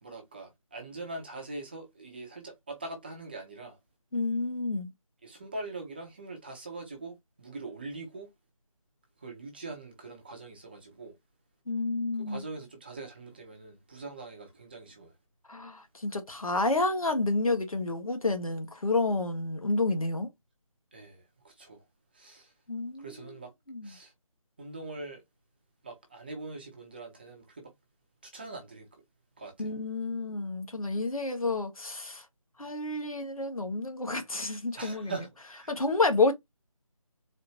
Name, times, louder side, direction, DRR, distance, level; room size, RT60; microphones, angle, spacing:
voice 1, 0.0-3.8 5.2-8.3 9.2-11.1 12.2-15.1 20.9-21.8 22.1-22.5 23.0-23.5 23.8-24.1 24.6-25.2 25.8-27.7 28.2-28.9 29.4-29.8 34.8-35.7, right 2 dB, 15° right, 0.7 m, -42 dB
voice 2, 4.1-4.9 11.7-12.4 15.5-20.3 22.7-23.3 23.7-23.9 29.6-32.2 32.6-35.1 35.7-36.3, left 3 dB, 75° left, 1.5 m, -29 dB
4.2 x 2.6 x 2.9 m
figure-of-eight pair, 165°, 18 cm